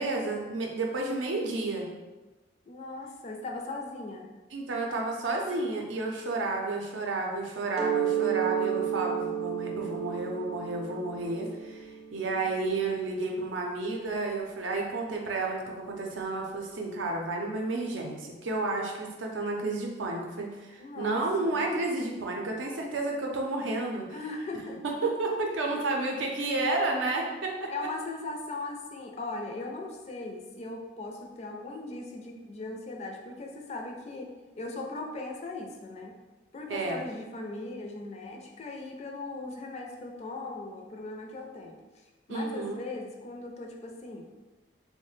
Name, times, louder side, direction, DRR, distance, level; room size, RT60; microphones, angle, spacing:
voice 1, 0.0-1.9 4.5-24.2 24.8-27.7 36.7-37.0 42.3-42.8, right 2 dB, 85° right, 0 dB, 0.5 m, -31 dB
voice 2, 2.7-4.3 20.8-21.7 24.1-25.4 26.4-26.6 27.7-36.1 36.5-41.8 42.3-44.3, left 2 dB, 35° left, 1 dB, 0.4 m, -39 dB
Mallet percussion, 7.8-13.3, right 9 dB, 35° right, 0.4 m, -32 dB
3.1 x 2.1 x 3.1 m, 1.2 s
head